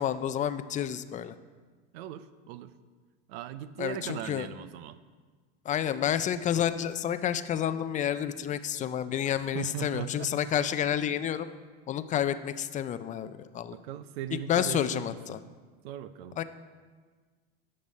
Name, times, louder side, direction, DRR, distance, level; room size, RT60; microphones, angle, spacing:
voice 1, 0.0-1.3 3.8-4.5 5.7-11.5 11.9-13.8 14.5-15.4 16.4-16.5, left 10 dB, 25° left, 12 dB, 0.4 m, -30 dB
voice 2, 1.9-2.7 3.3-5.0 9.3-10.3 13.7-15.4 15.8-16.4, right 11 dB, 75° right, 14 dB, 0.6 m, -39 dB
10.5 x 6.7 x 5.4 m, 1.5 s
supercardioid pair, 120°, 31 cm